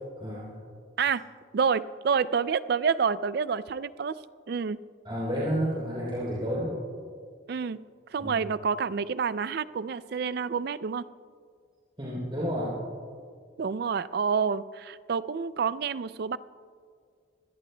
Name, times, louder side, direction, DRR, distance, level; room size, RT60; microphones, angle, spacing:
voice 1, 0.2-0.6 5.0-6.8 8.2-8.4 12.0-12.8, equal, 25° right, -7 dB, 3.4 m, -30 dB
voice 2, 1.5-4.1 4.5-4.8 7.5-7.8 8.1-11.1 13.6-16.4, right 6 dB, 50° right, 16 dB, 0.3 m, -28 dB
25.0 x 17.0 x 2.2 m, 2.2 s
head